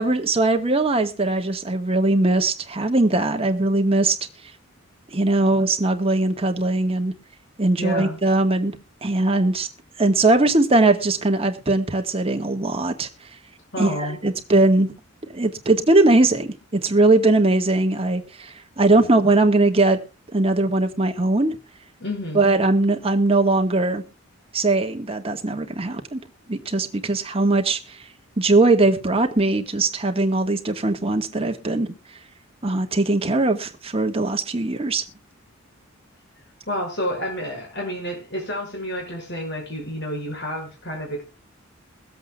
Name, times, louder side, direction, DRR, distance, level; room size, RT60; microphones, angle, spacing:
voice 1, 0.0-4.2 5.1-7.1 7.6-9.7 10.0-13.1 13.8-14.9 15.3-20.0 20.3-21.6 22.3-24.0 24.5-26.2 26.5-28.0 28.4-31.9 32.6-35.0, right 2 dB, 30° right, 5 dB, 1.4 m, -20 dB
voice 2, 7.8-8.2 13.7-14.2 22.0-22.4 36.7-41.2, equal, 55° left, 1 dB, 6.2 m, -29 dB
22.5 x 8.0 x 2.3 m, 0.31 s
head